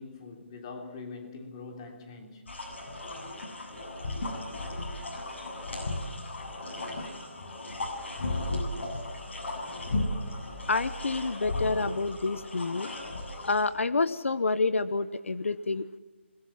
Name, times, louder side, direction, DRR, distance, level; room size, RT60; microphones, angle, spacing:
voice 1, 0.0-2.5, left 4 dB, 25° left, 3.2 m, -43 dB
sound 1, 2.5-13.6, left 2 dB, 65° left, 7.7 m, -35 dB
voice 2, 10.7-12.9 13.4-16.0, left 3 dB, 80° left, 1.1 m, -28 dB
27.0 x 22.0 x 5.8 m
hypercardioid pair, 170°, 7 cm